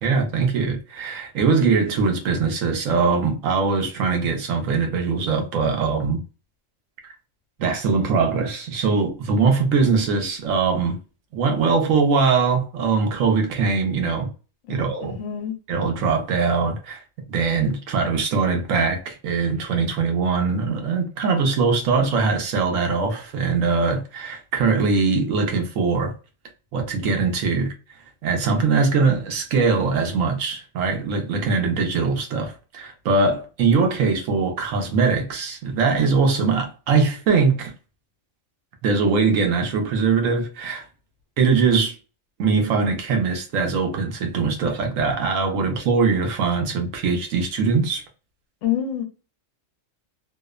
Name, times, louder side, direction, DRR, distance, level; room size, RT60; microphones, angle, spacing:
voice 1, 0.0-6.2 7.6-11.0 11.3-14.3 14.7-15.2 15.7-17.0 17.3-26.1 26.7-27.7 28.2-37.7 38.8-40.9 41.4-41.9 42.4-48.0, right 4 dB, 85° right, 1.1 m, -21 dB
voice 2, 14.7-15.6 48.6-49.0, left 10 dB, 70° left, 1.0 m, -27 dB
2.8 x 2.0 x 2.3 m
omnidirectional pair, 1.3 m